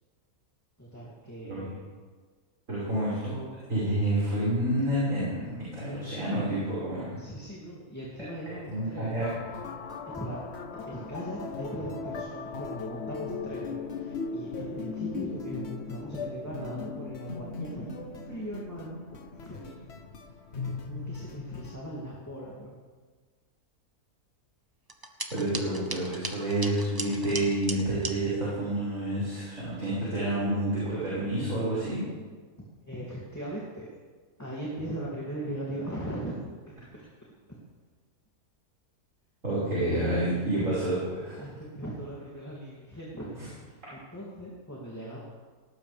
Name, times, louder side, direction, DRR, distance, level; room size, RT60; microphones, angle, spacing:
voice 1, 0.8-1.8 7.2-9.3 10.1-10.4 10.7-19.8 20.5-22.8 32.8-33.9 34.4-37.0 37.5-37.6 39.8-40.7 41.4-45.2, right 1 dB, 10° left, -6 dB, 2.6 m, -39 dB
voice 2, 2.7-3.4 3.7-7.1 8.7-9.3 25.3-32.1 39.4-41.4 43.4-43.5, right 1 dB, 55° right, -10 dB, 5.9 m, -29 dB
sound 1, 9.2-21.8, left 4 dB, 50° left, 1.1 m, -38 dB
sound 2, 24.9-28.1, right 2 dB, 15° right, 1.0 m, -37 dB
19.0 x 18.5 x 3.5 m, 1.5 s
omnidirectional pair, 1.6 m